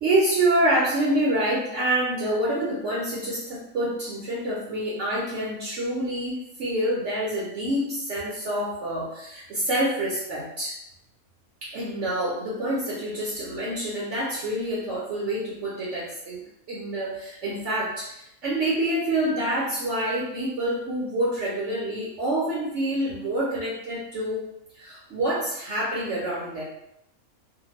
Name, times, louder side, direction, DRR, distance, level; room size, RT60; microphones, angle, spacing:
voice 1, 0.0-10.8 11.6-16.4 16.7-24.5 24.7-26.6, right 1 dB, 65° right, -6 dB, 0.9 m, -27 dB
2.8 x 2.1 x 2.9 m, 0.78 s
omnidirectional pair, 1.5 m